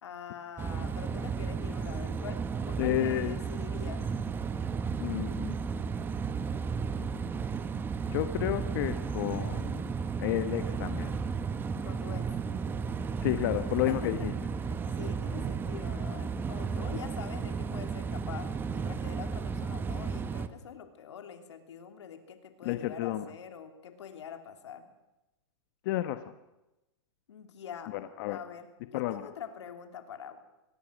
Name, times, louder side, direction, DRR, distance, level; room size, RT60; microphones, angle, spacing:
voice 1, 0.0-4.1 11.8-12.4 13.9-14.4 14.6-24.8 27.3-28.0 28.3-30.4, left 8 dB, 80° left, 7 dB, 3.1 m, -45 dB
sound 1, 0.6-20.5, right 5 dB, 15° right, 1.0 m, -34 dB
voice 2, 2.8-3.3 5.0-5.6 8.1-9.8 10.2-11.2 13.2-14.3 22.6-23.2 25.8-26.2 27.9-28.4 28.9-29.3, left 14 dB, 50° left, 10 dB, 1.2 m, -31 dB
25.0 x 20.0 x 6.4 m, 0.97 s
hypercardioid pair, 140°, 14 cm